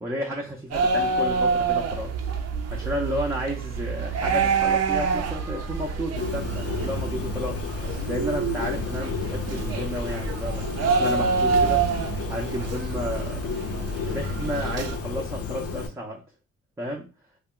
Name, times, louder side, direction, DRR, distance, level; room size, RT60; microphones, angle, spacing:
voice 1, 0.0-2.1 2.7-7.6 8.1-13.4 14.1-16.2 16.8-17.1, equal, 10° right, -1 dB, 0.5 m, -32 dB
sound 1, 0.7-15.0, right 5 dB, 55° right, 0.5 m, -27 dB
Bird, 6.2-15.9, left 5 dB, 50° left, 0.6 m, -32 dB
2.2 x 2.1 x 3.7 m, 0.32 s
cardioid pair, 90°, 30 cm